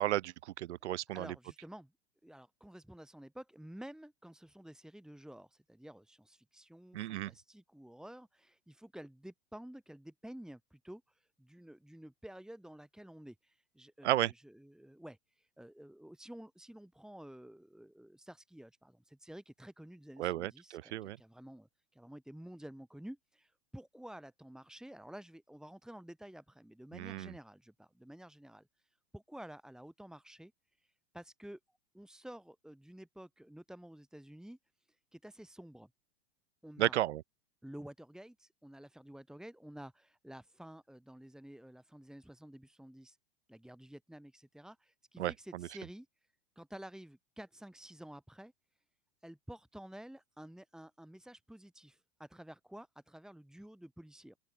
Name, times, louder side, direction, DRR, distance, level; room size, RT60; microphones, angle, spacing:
voice 1, 0.0-1.3 6.9-7.3 14.0-14.3 20.2-21.2 26.9-27.3 36.8-37.2 45.2-45.7, right 14 dB, 80° right, 1.0 m, -33 dB
voice 2, 1.1-1.9 2.2-28.7 29.1-30.5 30.8-31.6 31.9-34.6 35.1-35.9 36.6-37.0 37.6-43.2 43.5-46.1 46.6-48.5 49.2-54.4, right 1 dB, ahead, 5.6 m, -51 dB
open air
hypercardioid pair, 115°, 34 cm